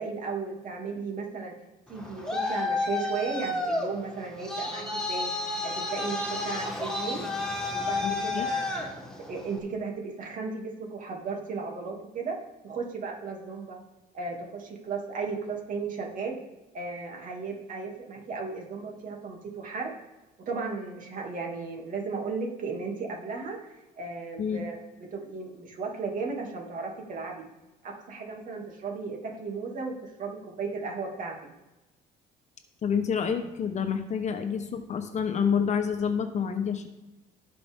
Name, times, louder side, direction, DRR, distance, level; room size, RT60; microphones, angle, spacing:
voice 1, 0.0-1.5 1.9-5.3 5.6-7.2 7.6-8.9 9.3-12.4 12.6-13.8 14.1-16.4 16.7-19.9 20.5-24.8 25.1-27.4 27.8-31.3, right 4 dB, 50° right, 0 dB, 2.7 m, -35 dB
Traffic noise roadway noise, 1.9-9.6, left 2 dB, 5° left, 2.4 m, -31 dB
voice 2, 8.0-8.5 24.4-24.6 32.8-36.9, left 7 dB, 45° left, 7 dB, 1.1 m, -28 dB
17.0 x 5.8 x 3.7 m, 1.0 s
cardioid pair, 110°, 17 cm